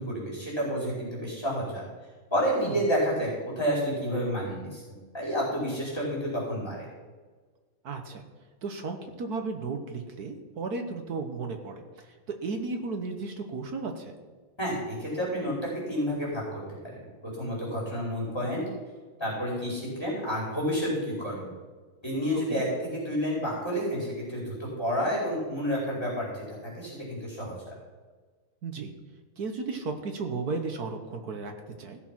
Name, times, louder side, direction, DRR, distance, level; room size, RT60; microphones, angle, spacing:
voice 1, 0.0-1.8 2.3-6.9 14.6-16.6 16.9-17.1 17.4-18.6 19.2-21.5 22.0-22.7 22.9-27.7, equal, 10° left, -6 dB, 4.5 m, -30 dB
voice 2, 7.8-8.2 8.6-14.1 22.5-22.6 28.6-28.9 29.4-32.0, right 4 dB, 55° right, 5 dB, 1.4 m, -34 dB
16.0 x 6.8 x 5.9 m, 1.4 s
omnidirectional pair, 2.3 m